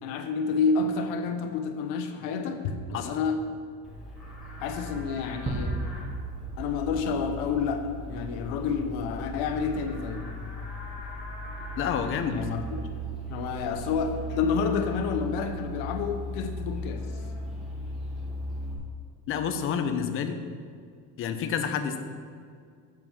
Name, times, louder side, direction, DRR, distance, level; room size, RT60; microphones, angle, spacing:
voice 1, 0.0-3.4 4.6-5.8 6.6-10.3 12.3-12.8 13.3-17.1, left 5 dB, 75° left, 6 dB, 1.0 m, -29 dB
Livestock farm animals working animals, 3.8-18.7, left 1 dB, ahead, 1.7 m, -37 dB
sound 1, 5.5-7.9, right 3 dB, 20° right, 0.7 m, -34 dB
voice 2, 11.8-12.4 19.3-20.4 21.2-22.0, left 7 dB, 35° left, 7 dB, 0.6 m, -29 dB
7.7 x 4.6 x 7.1 m, 2.1 s
cardioid pair, 165°, 37 cm